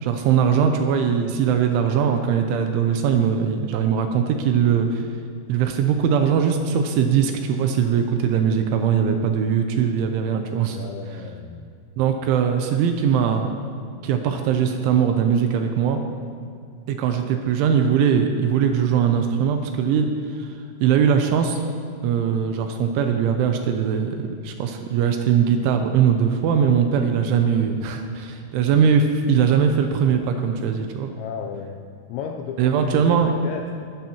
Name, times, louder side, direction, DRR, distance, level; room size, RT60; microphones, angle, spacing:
voice 1, 0.0-5.1 5.5-10.8 12.0-13.5 14.0-16.0 16.9-21.6 22.0-31.1 32.6-33.3, right 7 dB, 80° right, 5 dB, 2.9 m, -21 dB
voice 2, 10.6-11.7 31.2-31.8 32.1-33.9, left 7 dB, 85° left, 3 dB, 2.7 m, -34 dB
20.0 x 12.5 x 3.0 m, 2.4 s
omnidirectional pair, 5.8 m